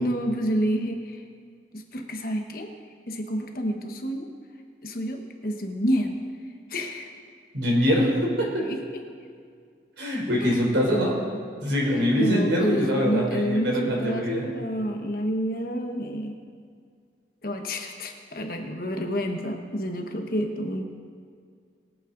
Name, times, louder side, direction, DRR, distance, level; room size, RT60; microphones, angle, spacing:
voice 1, 0.0-1.0 1.7-2.7 3.1-4.3 4.8-6.1 6.7-7.1 8.6-8.8 10.4-10.5 11.9-16.3 17.4-20.8, equal, 50° left, 3 dB, 1.3 m, -28 dB
voice 2, 7.5-8.7 10.0-11.2 11.6-14.5, equal, 80° right, -2 dB, 3.7 m, -23 dB
22.5 x 8.8 x 3.9 m, 2.1 s
head